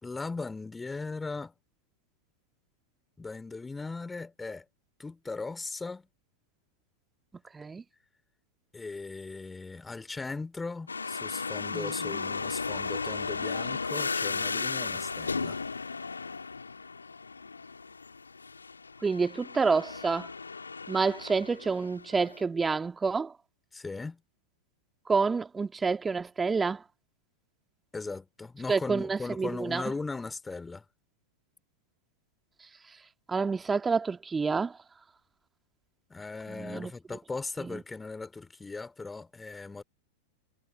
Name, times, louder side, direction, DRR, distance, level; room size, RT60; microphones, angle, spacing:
voice 1, 0.0-1.5 3.2-4.7 5.0-6.1 8.7-15.6 23.7-24.2 27.9-30.9 36.1-39.8, left 3 dB, 10° left, 3.7 m, -38 dB
sound 1, 10.9-22.4, left 4 dB, 75° left, 3.2 m, -35 dB
voice 2, 19.0-20.3 20.9-23.3 25.1-26.8 28.7-29.8 33.3-34.7 36.5-36.9 37.6-37.8, right 4 dB, 15° right, 2.2 m, -28 dB
figure-of-eight pair, 90°, 0 cm